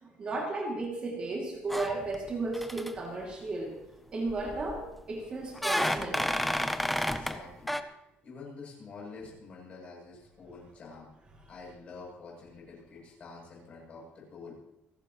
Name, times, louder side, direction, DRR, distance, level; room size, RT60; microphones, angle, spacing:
voice 1, 0.0-3.8 4.1-6.3, right 2 dB, 30° right, 0 dB, 2.5 m, -34 dB
sound 1, 1.7-2.3 2.5-2.9 4.3-4.8 5.6-7.4 7.7-7.8, equal, ahead, 0.6 m, -31 dB
voice 2, 7.0-7.8 8.2-11.1 11.5-14.5, left 4 dB, 35° left, -3 dB, 7.9 m, -47 dB
29.0 x 12.0 x 3.1 m, 0.88 s
cardioid pair, 180°, 4 cm